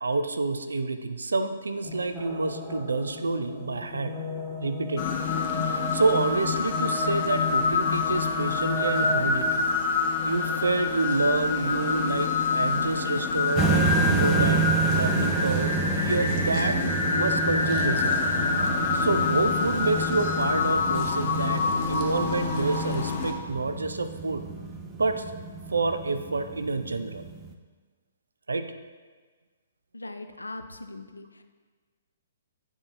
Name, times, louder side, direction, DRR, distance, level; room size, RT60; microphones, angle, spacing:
voice 1, 0.0-4.2 4.6-5.2 5.6-9.7 10.2-18.2 18.9-24.4 25.0-25.3 25.7-27.2 28.5-28.7, right 3 dB, 75° right, 9 dB, 0.5 m, -28 dB
sound 1, 1.8-9.6, left 3 dB, ahead, 1.1 m, -36 dB
sound 2, 5.0-23.3, left 4 dB, 35° left, 0.9 m, -26 dB
sound 3, 13.6-27.5, right 6 dB, 20° right, 0.5 m, -30 dB
voice 2, 29.9-31.4, left 2 dB, 85° left, 7 dB, 0.5 m, -40 dB
9.6 x 4.4 x 3.0 m, 1.4 s
figure-of-eight pair, 125°, 0 cm